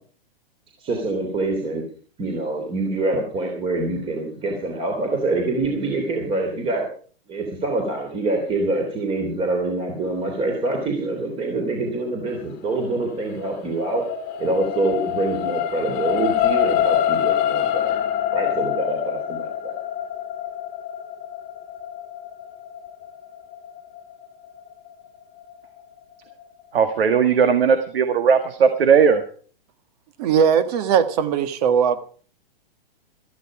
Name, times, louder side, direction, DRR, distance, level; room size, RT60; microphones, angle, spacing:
voice 1, 0.8-1.8 2.2-6.8 7.3-14.0 14.4-17.8 18.3-19.7, right 2 dB, 20° right, 2 dB, 3.2 m, -25 dB
sound 1, 13.3-25.8 26.3-26.4, left 11 dB, 30° left, 1.6 m, -26 dB
voice 2, 26.7-29.2, right 6 dB, 80° right, 8 dB, 1.8 m, -17 dB
voice 3, 30.2-32.1, right 7 dB, 45° right, 11 dB, 1.6 m, -19 dB
14.0 x 13.5 x 4.9 m, 0.44 s
hypercardioid pair, 150°, 29 cm